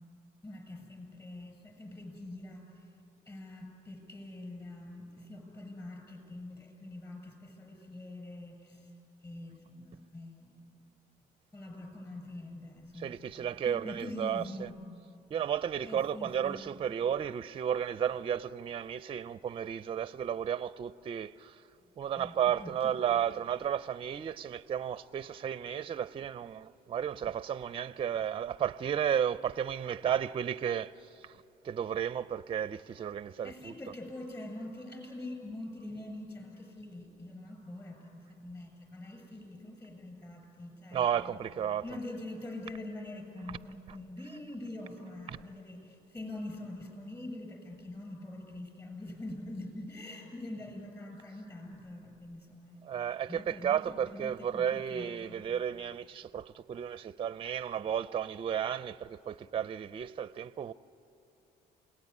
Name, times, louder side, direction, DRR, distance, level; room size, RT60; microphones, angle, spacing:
voice 1, 0.4-2.7 3.3-8.9 9.2-10.6 11.5-13.2 13.7-14.8 15.8-16.6 22.2-22.9 33.4-41.3 41.8-52.8 53.3-55.4, left 1 dB, 20° left, 6.9 m, -44 dB
voice 2, 13.0-14.7 15.3-21.5 22.0-30.9 31.6-33.7 40.9-41.8 45.3-45.4 52.9-60.7, right 9 dB, 30° right, 0.5 m, -33 dB
27.5 x 18.5 x 9.6 m
cardioid pair, 110°, 17 cm